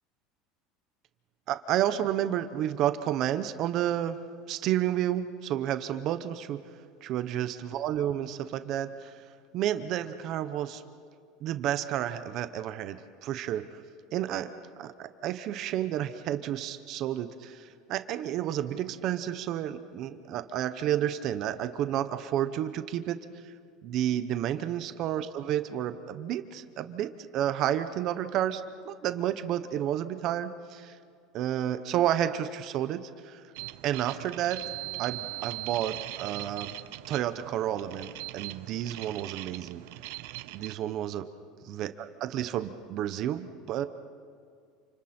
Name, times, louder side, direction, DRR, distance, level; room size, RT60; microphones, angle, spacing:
voice 1, 1.5-4.2 4.5-6.6 7.0-9.2 9.5-10.8 11.4-13.8 14.1-23.2 23.4-23.5 23.8-31.0 31.3-33.4 33.8-34.6 35.0-36.7 37.1-39.8 40.5-41.3 41.6-43.9, right 11 dB, 45° right, 10 dB, 0.9 m, -31 dB
sound 1, 33.6-40.8, right 20 dB, 75° right, 0.6 m, -40 dB
29.0 x 27.0 x 4.4 m, 2.2 s
cardioid pair, 160°, 0 cm